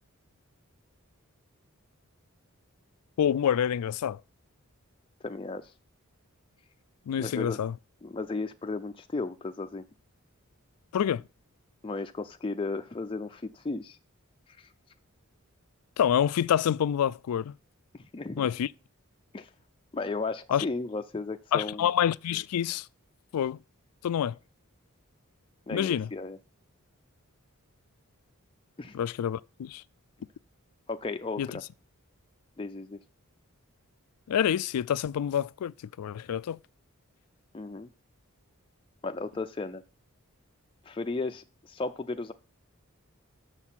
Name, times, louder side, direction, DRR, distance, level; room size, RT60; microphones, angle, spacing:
voice 1, 3.2-4.2 7.1-7.7 10.9-11.2 16.0-17.5 18.4-18.7 20.5-20.7 21.5-22.9 23.3-23.6 24.0-24.3 25.7-26.1 28.9-29.8 31.4-31.6 34.3-36.6, left 9 dB, 90° left, 0.3 m, -27 dB
voice 2, 5.2-5.7 7.2-7.6 8.0-9.8 11.8-14.0 14.6-14.7 17.9-18.4 19.3-19.5 19.9-21.9 25.7-26.4 28.8-29.0 30.9-31.4 32.6-33.0 37.5-37.9 39.0-39.8 40.9-42.3, left 3 dB, 25° left, 0.4 m, -34 dB
6.7 x 6.3 x 5.7 m
head